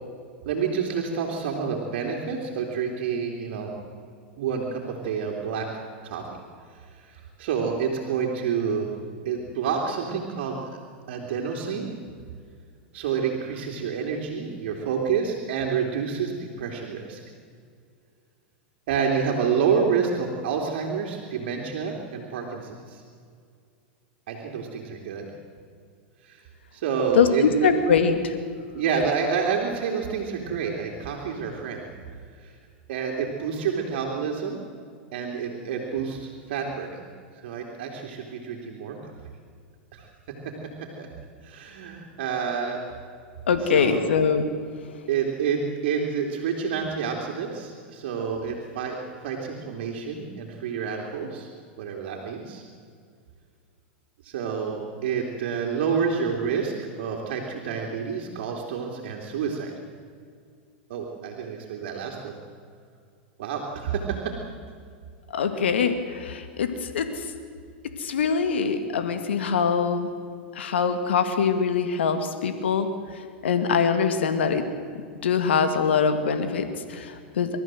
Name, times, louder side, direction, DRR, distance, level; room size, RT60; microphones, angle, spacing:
voice 1, 0.4-3.7 4.4-5.7 6.0-6.2 6.9-8.9 9.2-10.6 11.1-11.9 12.9-17.2 18.9-23.0 24.3-25.3 26.2-26.4 26.7-27.7 28.7-31.9 32.4-32.5 32.9-34.6 35.1-37.0 37.4-39.1 39.9-40.1 41.0-41.1 41.4-42.8 43.6-44.0 45.1-49.0 49.2-51.5 51.8-52.6 54.2-59.7 60.9-62.4 63.4-64.3, right 6 dB, 65° right, 0 dB, 3.1 m, -28 dB
voice 2, 27.2-28.4 43.5-44.5 65.3-67.1 68.0-70.1 70.6-72.9 73.4-74.6 75.2-77.5, left 6 dB, 85° left, 8 dB, 2.0 m, -23 dB
27.5 x 14.0 x 7.7 m, 2.2 s
hypercardioid pair, 110°, 6 cm